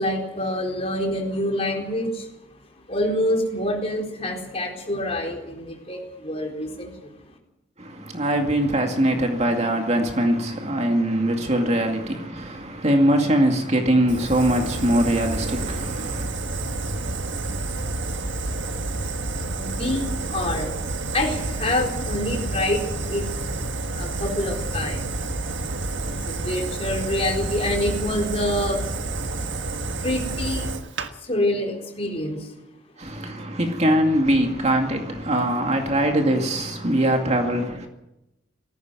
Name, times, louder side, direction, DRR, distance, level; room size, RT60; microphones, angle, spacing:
voice 1, 0.0-2.3 2.9-7.3 18.9-19.0 19.6-20.8 21.1-23.3 23.9-25.2 26.1-28.8 30.0-30.7 31.2-32.5, left 1 dB, 30° left, 4.3 m, -26 dB
voice 2, 7.8-16.3 33.0-37.9, right 1 dB, 35° right, 2.2 m, -22 dB
Fire, 14.1-31.1, right 2 dB, 75° right, 1.5 m, -29 dB
18.0 x 15.0 x 9.6 m
head